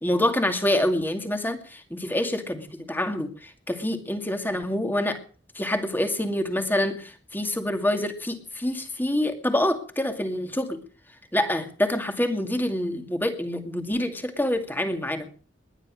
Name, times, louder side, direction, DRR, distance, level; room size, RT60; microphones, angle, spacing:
voice 1, 0.0-5.2 5.6-10.8 11.3-15.3, left 1 dB, 10° left, 6 dB, 2.2 m, -26 dB
20.5 x 10.5 x 6.3 m, 0.42 s
head